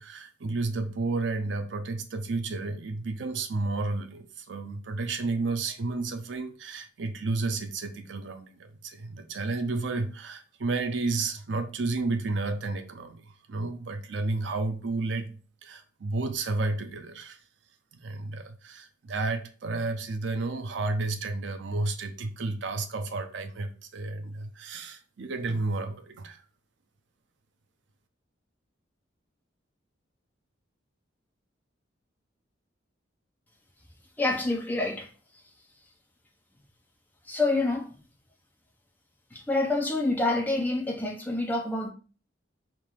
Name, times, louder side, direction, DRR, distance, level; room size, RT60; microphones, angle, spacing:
voice 1, 0.0-17.4 18.0-26.4, right 3 dB, 70° right, 0.5 m, -32 dB
voice 2, 34.2-35.1 37.2-38.0 39.3-41.9, left 2 dB, 10° left, 0.6 m, -27 dB
3.6 x 2.5 x 4.6 m
head